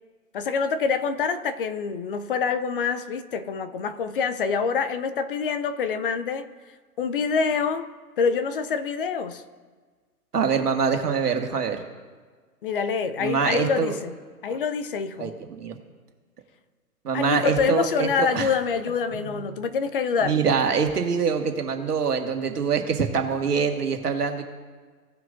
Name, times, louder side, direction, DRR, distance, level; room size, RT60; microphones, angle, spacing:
voice 1, 0.3-6.5 7.0-9.4 12.6-14.1 14.4-15.3 17.1-20.4, left 5 dB, 35° left, 11 dB, 0.5 m, -26 dB
voice 2, 10.3-11.8 13.2-13.9 15.2-15.8 17.0-18.5 19.2-19.3 20.2-24.4, right 6 dB, 80° right, 4 dB, 1.7 m, -24 dB
17.5 x 6.2 x 2.6 m, 1.5 s
hypercardioid pair, 125°, 46 cm